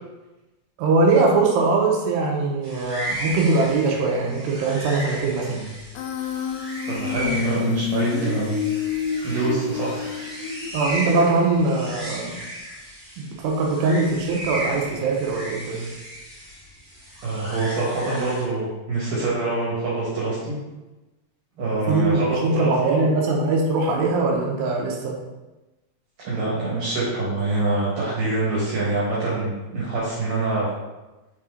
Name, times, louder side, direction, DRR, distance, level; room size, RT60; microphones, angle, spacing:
voice 1, 0.8-5.6 10.7-12.3 13.2-15.9 21.9-25.2, right 3 dB, 90° right, 0 dB, 3.0 m, -21 dB
sound 1, 2.6-18.4, right 1 dB, 30° right, 1.4 m, -35 dB
Human voice, 5.9-10.9, left 9 dB, 85° left, 2.3 m, -28 dB
voice 2, 6.9-8.5 9.2-9.9 17.2-20.6 21.6-23.0 26.2-30.7, right 2 dB, 65° right, -8 dB, 2.8 m, -25 dB
5.9 x 4.3 x 3.7 m, 1.1 s
omnidirectional pair, 4.7 m